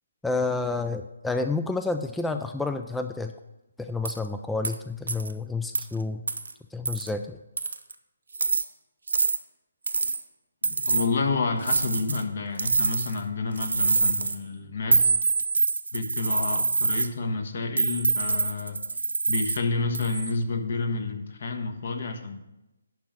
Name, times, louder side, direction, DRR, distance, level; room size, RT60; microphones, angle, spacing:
voice 1, 0.2-3.3 3.8-6.2 6.7-7.4, left 3 dB, 5° left, 7 dB, 0.3 m, -29 dB
sound 1, 4.0-4.2 4.6-4.8 5.1-5.3 5.7-5.8 6.3-6.5 6.9-7.1 7.6-7.9 8.3-8.6 9.1-9.4 9.9-10.2 10.6-11.1 11.6-12.2 12.6-13.2 13.6-14.4 14.9-17.1 17.8-19.6 19.9-20.3, right 4 dB, 80° right, 0.7 m, -25 dB
voice 2, 10.6-15.1 15.9-18.8 19.3-22.4, left 3 dB, 60° left, 6 dB, 1.3 m, -29 dB
11.5 x 3.8 x 7.5 m, 0.96 s
figure-of-eight pair, 150°, 0 cm